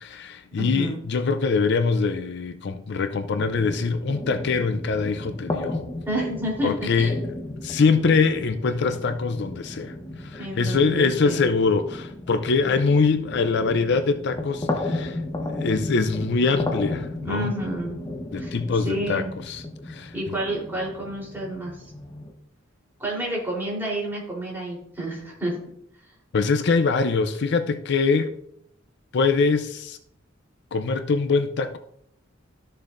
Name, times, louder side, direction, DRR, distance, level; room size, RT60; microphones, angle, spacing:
voice 1, 0.0-5.8 6.6-7.2 7.6-15.2 15.5-17.5 18.3-20.1 26.3-28.3 29.1-30.0 30.7-31.8, left 4 dB, 60° left, 0.5 m, -23 dB
voice 2, 0.6-1.0 6.1-7.1 10.4-11.5 17.2-18.0 18.4-18.5 18.8-19.3 20.1-21.9 23.0-25.5, right 1 dB, 10° right, 3.5 m, -29 dB
sound 1, 3.2-22.3, left 2 dB, 20° left, 0.9 m, -34 dB
13.0 x 6.6 x 2.5 m
head